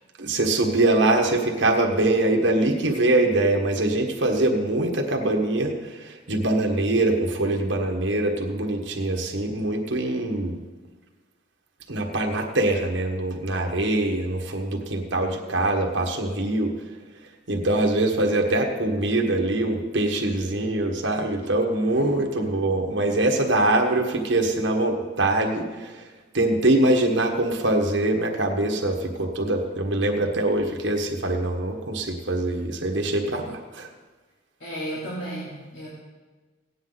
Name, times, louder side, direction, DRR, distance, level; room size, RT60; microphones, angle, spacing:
voice 1, 0.2-10.6 11.9-16.7 17.5-26.1 26.3-33.9, right 2 dB, 75° right, 2 dB, 1.5 m, -23 dB
voice 2, 34.6-35.9, right 1 dB, 75° left, -8 dB, 3.2 m, -34 dB
17.0 x 9.5 x 4.1 m, 1.3 s
head